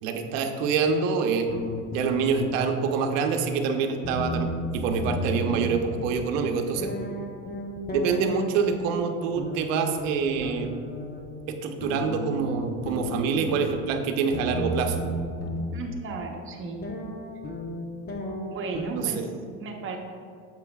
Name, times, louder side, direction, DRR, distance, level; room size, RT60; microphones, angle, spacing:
voice 1, 0.0-1.5 1.9-4.5 4.7-6.9 7.9-10.7 11.5-15.0 18.9-19.3, right 5 dB, 80° right, 5 dB, 0.9 m, -26 dB
sound 1, 0.6-0.9 1.5-3.6 3.9-6.2 6.8-8.8 9.4-11.2 11.8-13.8 14.3-15.6 16.2-16.3 16.8-18.8, equal, 25° left, 1.0 m, -33 dB
voice 2, 15.7-16.8 18.5-20.0, right 3 dB, 35° right, 2 dB, 1.0 m, -34 dB
9.1 x 7.6 x 2.4 m, 2.4 s
supercardioid pair, 135°, 38 cm